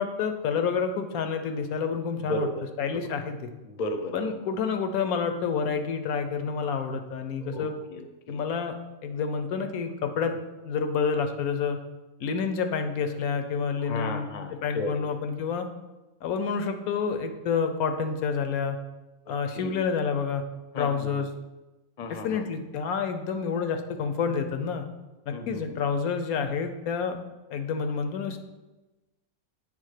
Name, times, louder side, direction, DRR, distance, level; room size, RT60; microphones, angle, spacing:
voice 1, 0.0-2.5 2.8-3.5 4.1-7.7 8.3-8.7 9.0-10.3 10.6-11.8 12.2-14.3 14.6-15.7 16.2-18.8 19.3-20.4 20.8-21.3 22.1-24.8 25.3-27.2 27.5-28.4, left 6 dB, 85° left, 7 dB, 1.2 m, -28 dB
voice 2, 2.3-2.6 3.0-3.1 3.7-4.4 7.4-8.4 13.8-15.0 19.5-19.8 20.7-21.2 22.0-22.4 25.3-25.8, left 2 dB, 40° left, 7 dB, 0.6 m, -34 dB
8.5 x 3.6 x 6.5 m, 1.1 s
omnidirectional pair, 1.5 m